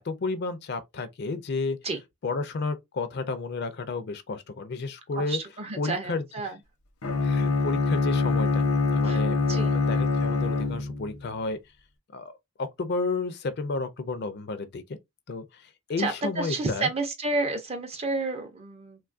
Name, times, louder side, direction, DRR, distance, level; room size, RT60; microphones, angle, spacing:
voice 1, 0.0-1.8 2.2-5.4 5.8-6.2 7.2-11.6 12.1-12.3 12.6-14.8 15.3-16.9, left 3 dB, 50° left, 0.4 m, -32 dB
voice 2, 5.2-6.6 9.0-9.8 16.0-19.0, right 3 dB, 30° right, 0.4 m, -31 dB
Bowed string instrument, 7.0-11.2, left 3 dB, 80° left, 0.7 m, -24 dB
3.1 x 2.3 x 2.4 m
head